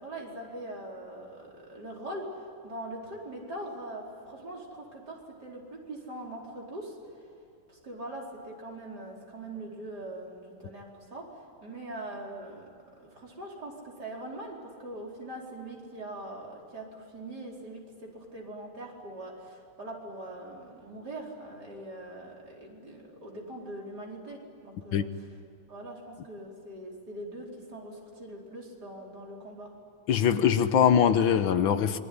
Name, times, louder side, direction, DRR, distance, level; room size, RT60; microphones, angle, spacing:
voice 1, 0.0-7.0 7.7-11.2 11.6-12.7 13.0-25.3 25.7-29.7, right 1 dB, 45° right, -2 dB, 5.3 m, -42 dB
voice 2, 30.1-32.0, left 8 dB, 70° left, 11 dB, 1.7 m, -22 dB
27.5 x 22.0 x 9.6 m, 2.6 s
omnidirectional pair, 2.4 m